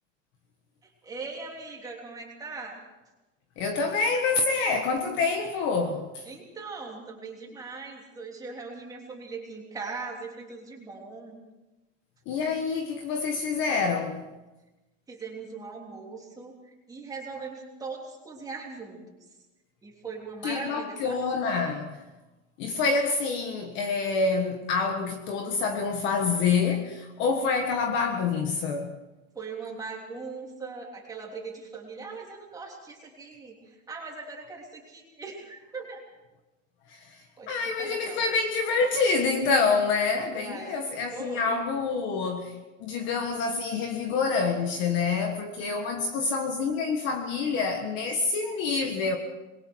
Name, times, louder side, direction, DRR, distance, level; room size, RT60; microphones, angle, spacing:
voice 1, 0.8-2.8 6.2-11.4 15.1-19.0 19.8-21.3 29.3-36.0 37.4-38.2 40.4-40.8 41.1-41.6, right 4 dB, 10° right, 3.4 m, -40 dB
voice 2, 3.6-6.2 12.3-14.3 20.4-22.0 22.6-28.9 36.9-37.1 37.5-42.5 42.8-49.2, left 4 dB, 30° left, 1.6 m, -27 dB
26.0 x 22.0 x 4.6 m
supercardioid pair, 180°, 38 cm